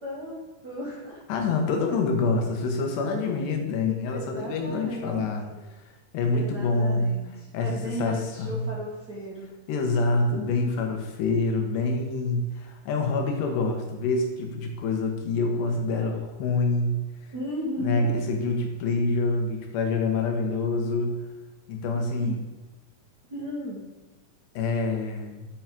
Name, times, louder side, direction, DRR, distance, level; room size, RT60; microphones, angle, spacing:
voice 1, 0.0-1.2 3.0-5.7 6.3-9.6 17.3-18.2 22.2-22.3 23.3-24.0, equal, 55° right, -6 dB, 1.1 m, -36 dB
voice 2, 1.3-5.5 6.1-7.1 7.5-8.7 9.7-17.0 17.8-21.2 21.7-22.4 24.5-25.5, left 3 dB, 85° left, 3 dB, 3.4 m, -26 dB
8.2 x 5.9 x 5.2 m, 1.2 s
omnidirectional pair, 4.7 m